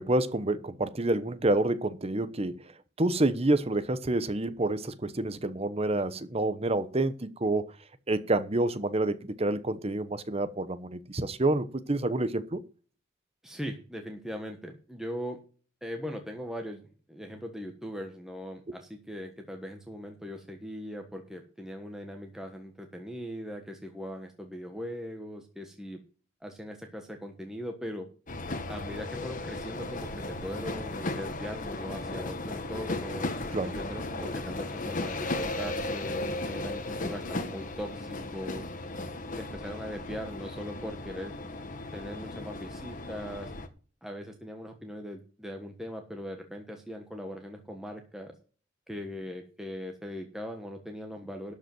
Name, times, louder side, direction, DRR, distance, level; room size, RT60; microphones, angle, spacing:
voice 1, 0.0-2.6 3.0-7.7 8.1-12.6 33.5-33.8, right 2 dB, 30° right, 0.9 m, -28 dB
voice 2, 13.4-15.4 15.8-16.8 17.1-26.0 26.4-28.1 28.7-33.3 33.6-38.7 39.4-41.3 41.9-43.5 44.0-48.3 48.9-51.5, equal, 5° right, 1.4 m, -40 dB
sound 1, 28.3-43.7, left 2 dB, 40° left, 1.4 m, -36 dB
12.5 x 5.3 x 7.7 m
head